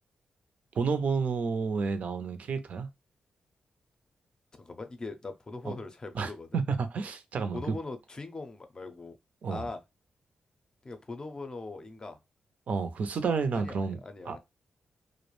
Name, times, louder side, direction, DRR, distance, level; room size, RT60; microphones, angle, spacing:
voice 1, 0.8-2.9 5.6-5.7 6.1-7.7 9.4-9.7 12.7-14.0 14.2-14.4, right 5 dB, 65° right, 0.5 m, -30 dB
voice 2, 4.6-6.6 7.5-9.2 9.5-9.8 10.8-12.2 13.5-14.4, left 3 dB, 30° left, 0.5 m, -41 dB
2.4 x 2.0 x 3.0 m
cardioid pair, 95°, 3 cm